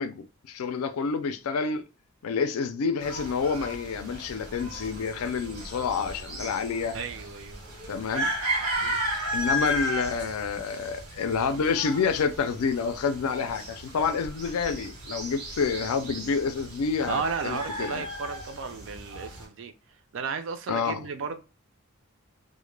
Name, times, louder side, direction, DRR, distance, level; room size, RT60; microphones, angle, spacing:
voice 1, 0.0-1.8 2.2-7.0 7.9-8.3 9.3-18.0 20.7-21.0, left 5 dB, 85° left, 0.4 m, -28 dB
sound 1, 3.0-19.4, right 1 dB, 85° right, 1.0 m, -35 dB
voice 2, 6.9-7.6 8.8-9.0 17.1-19.7 20.1-21.4, right 5 dB, 60° right, 0.4 m, -34 dB
2.1 x 2.1 x 3.1 m
head